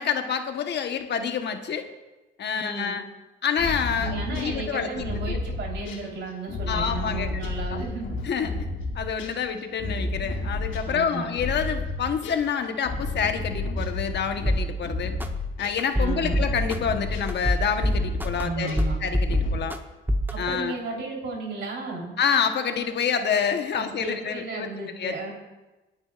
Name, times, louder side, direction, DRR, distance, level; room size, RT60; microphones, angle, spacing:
voice 1, 0.0-1.8 2.4-3.0 3.4-5.4 6.7-7.8 8.2-8.5 8.9-15.1 15.6-19.8 20.4-20.7 22.2-24.7 25.0-25.3, left 7 dB, 60° left, 6 dB, 1.1 m, -28 dB
voice 2, 2.5-3.0 4.0-8.2 10.8-11.3 15.9-16.4 18.4-19.0 20.3-22.1 23.7-25.3, right 3 dB, 65° right, 0 dB, 3.8 m, -34 dB
sound 1, 3.6-12.5 12.8-19.6, left 2 dB, 85° left, 3.1 m, -32 dB
sound 2, 14.4-14.6 15.2-15.3 15.8-16.8 17.3-18.4 18.8-19.8 20.1-20.3, equal, 10° right, 0.9 m, -23 dB
26.0 x 8.8 x 2.5 m, 1.1 s
cardioid pair, 90°, 20 cm